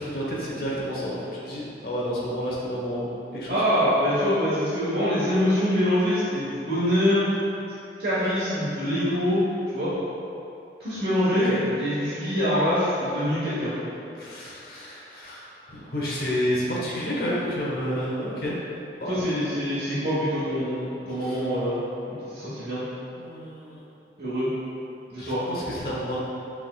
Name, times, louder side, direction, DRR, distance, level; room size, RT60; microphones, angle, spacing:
voice 1, 0.0-3.6 11.4-11.6 14.1-18.6 19.0-19.5 21.2-21.4 23.1-23.8 25.2-26.2, equal, 55° left, -5 dB, 1.0 m, -30 dB
voice 2, 3.5-7.2 8.0-9.4 9.7-9.9 10.8-13.7 19.1-21.8 22.3-22.8 24.2-24.5 25.1-25.4, equal, 60° right, -13 dB, 1.2 m, -24 dB
6.1 x 3.6 x 2.3 m, 2.8 s
head